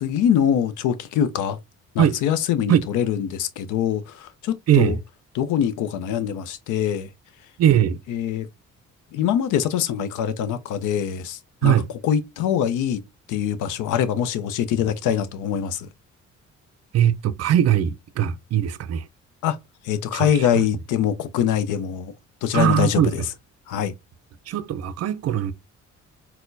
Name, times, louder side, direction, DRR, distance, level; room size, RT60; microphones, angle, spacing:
voice 1, 0.0-1.6 1.9-5.0 5.3-7.1 8.1-8.5 9.1-11.8 12.0-13.0 13.3-15.9 19.4-19.6 19.8-22.1 22.4-23.2 23.7-23.9, left 9 dB, 85° left, 0.5 m, -23 dB
voice 2, 7.6-8.0 11.6-11.9 16.9-19.0 20.1-20.6 22.5-23.1 24.5-25.5, right 10 dB, 55° right, 0.4 m, -20 dB
4.2 x 2.1 x 2.5 m
cardioid pair, 90°, 30 cm